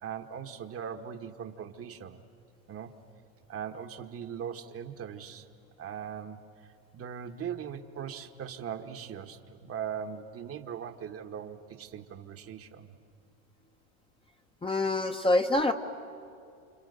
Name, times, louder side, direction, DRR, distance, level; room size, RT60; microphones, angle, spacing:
voice 1, 0.0-2.2 2.7-2.9 3.5-5.5 5.8-6.4 6.9-12.9, right 8 dB, 35° right, 6 dB, 1.3 m, -40 dB
voice 2, 14.6-15.7, left 2 dB, 15° left, 5 dB, 1.0 m, -25 dB
29.5 x 27.0 x 6.6 m, 2.5 s
supercardioid pair, 115°, 41 cm